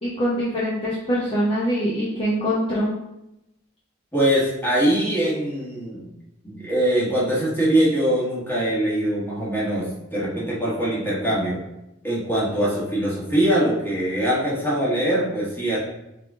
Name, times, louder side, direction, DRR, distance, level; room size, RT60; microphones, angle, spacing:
voice 1, 0.0-2.9, equal, 25° left, -8 dB, 0.7 m, -23 dB
voice 2, 4.1-6.1 6.4-11.6 12.0-15.8, right 1 dB, 10° left, -7 dB, 1.5 m, -22 dB
3.7 x 3.4 x 3.5 m, 0.88 s
head